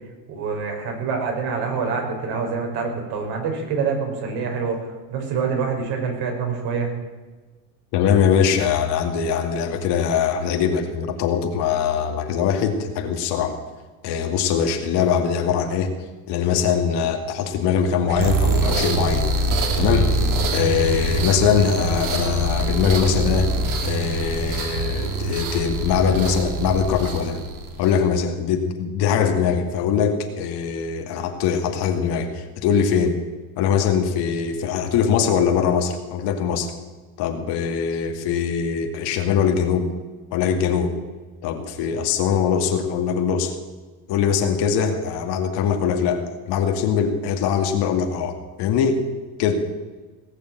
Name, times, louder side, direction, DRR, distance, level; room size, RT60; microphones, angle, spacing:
voice 1, 0.3-6.9, right 5 dB, 60° right, 2 dB, 5.0 m, -26 dB
voice 2, 7.9-13.6 14.0-15.9 16.3-19.3 19.7-20.1 20.5-23.5 23.8-27.4 27.8-33.2 33.6-36.7 37.2-39.9 40.3-41.0 41.4-43.5 44.1-49.0 49.4-49.5, left 7 dB, 60° left, 5 dB, 2.4 m, -22 dB
sound 1, 18.1-28.1, right 2 dB, 45° right, 2.6 m, -24 dB
18.0 x 7.1 x 9.0 m, 1.3 s
supercardioid pair, 130°, 45 cm